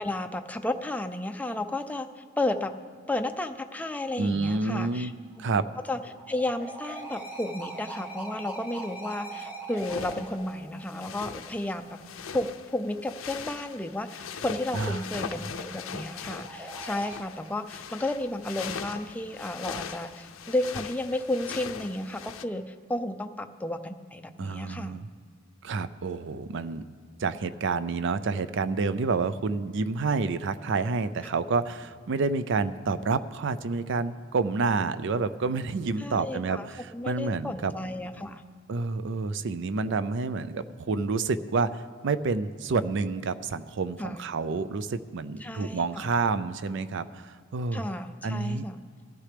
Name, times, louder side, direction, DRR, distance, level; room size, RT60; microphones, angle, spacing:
voice 1, 0.0-2.7 3.1-5.1 5.9-6.0 6.3-12.0 12.3-25.0 31.3-31.4 36.0-36.7 36.9-38.4 44.0-44.3 45.4-46.1 47.7-48.8, left 1 dB, 10° left, 7 dB, 0.4 m, -32 dB
voice 2, 4.2-5.1 5.4-5.7 14.7-15.0 24.4-25.1 25.6-26.8 27.2-37.7 38.7-47.8 48.2-48.6, right 4 dB, 65° right, 14 dB, 0.5 m, -29 dB
sound 1, 5.1-11.6 15.0-17.2, right 2 dB, 10° right, 1.5 m, -42 dB
sound 2, 9.8-22.4, left 6 dB, 90° left, 0.6 m, -40 dB
18.0 x 13.0 x 3.4 m, 2.2 s
head